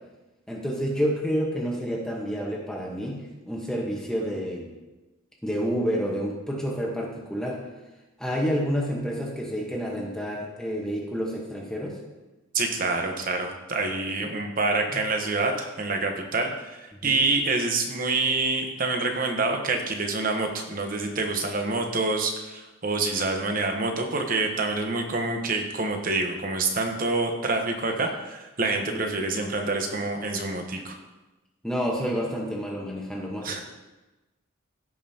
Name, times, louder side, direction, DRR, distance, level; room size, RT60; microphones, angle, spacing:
voice 1, 0.5-4.7 5.4-7.6 8.2-12.0 17.0-17.2 28.9-29.0 31.6-33.6, equal, 5° left, -2 dB, 1.1 m, -29 dB
voice 2, 12.5-16.8 17.0-31.0 33.4-33.6, right 3 dB, 40° right, 3 dB, 1.0 m, -27 dB
16.0 x 5.4 x 2.8 m, 1.1 s
head